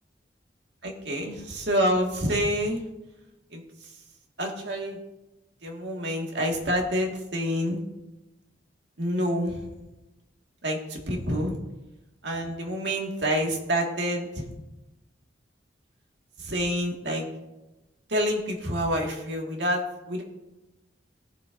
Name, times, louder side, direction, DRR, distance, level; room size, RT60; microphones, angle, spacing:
voice 1, 0.8-2.8 3.5-3.6 4.4-5.0 5.6-7.8 9.0-9.7 10.6-11.5 12.2-14.4 16.4-17.3 18.1-20.2, equal, 80° right, 0 dB, 1.9 m, -27 dB
18.5 x 7.1 x 2.6 m, 1.0 s
head